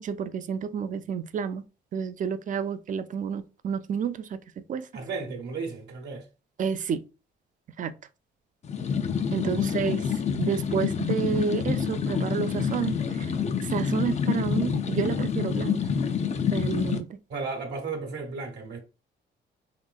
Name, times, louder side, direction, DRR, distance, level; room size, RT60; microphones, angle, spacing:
voice 1, 0.0-1.6 1.9-4.9 6.6-7.0 7.8-7.9 9.3-10.0 10.4-13.3 13.6-15.8 16.5-17.2, right 7 dB, 40° right, 0.4 m, -30 dB
voice 2, 4.9-6.3 9.5-9.8 17.3-18.8, right 4 dB, 65° right, 0.9 m, -34 dB
sound 1, 8.6-17.0, left 7 dB, 35° left, 0.4 m, -27 dB
3.1 x 2.9 x 2.2 m
cardioid pair, 90°, 20 cm